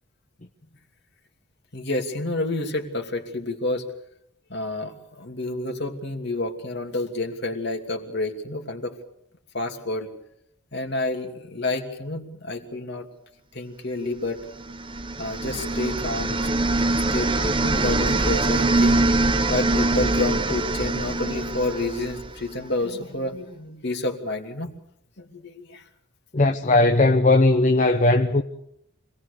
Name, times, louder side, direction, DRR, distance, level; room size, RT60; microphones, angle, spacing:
voice 1, 1.7-3.9 4.5-8.9 9.5-10.1 10.7-13.1 13.5-14.4 15.2-16.4 16.9-19.0 19.5-24.7 25.2-25.8, left 2 dB, 55° left, 2.7 m, -29 dB
sound 1, 14.6-22.6, right 2 dB, 25° right, 0.9 m, -23 dB
voice 2, 26.3-28.4, left 2 dB, 35° left, 0.9 m, -18 dB
26.0 x 19.0 x 6.8 m
head